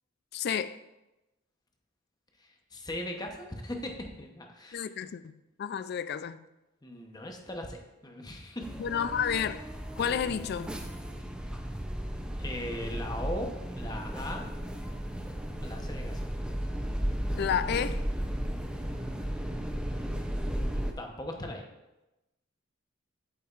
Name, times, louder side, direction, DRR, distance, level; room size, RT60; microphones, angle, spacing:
voice 1, 0.3-0.8 4.7-6.4 8.8-9.6 10.0-10.8 17.4-18.0, left 7 dB, 55° left, 0.3 m, -31 dB
voice 2, 2.4-3.4 3.6-4.8 6.8-8.7 12.4-14.5 15.6-16.2 20.5-21.6, left 1 dB, 20° left, 0.8 m, -39 dB
sound 1, 8.6-20.9, equal, 5° right, 0.5 m, -35 dB
8.3 x 8.1 x 2.5 m
head